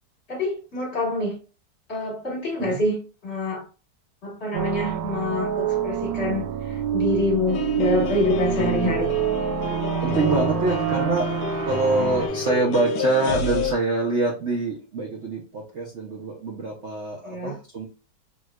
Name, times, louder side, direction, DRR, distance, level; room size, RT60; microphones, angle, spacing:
voice 1, 0.3-1.4 1.9-3.7 4.2-9.1 11.9-12.2 17.2-17.6, left 1 dB, 40° left, 1.4 m, -26 dB
sound 1, 4.5-12.3, right 9 dB, 90° right, 1.3 m, -27 dB
sound 2, 7.5-13.7, left 3 dB, 80° left, 1.2 m, -28 dB
voice 2, 10.0-11.4 11.6-17.9, right 2 dB, 55° right, 0.8 m, -25 dB
3.5 x 3.0 x 2.2 m
omnidirectional pair, 1.9 m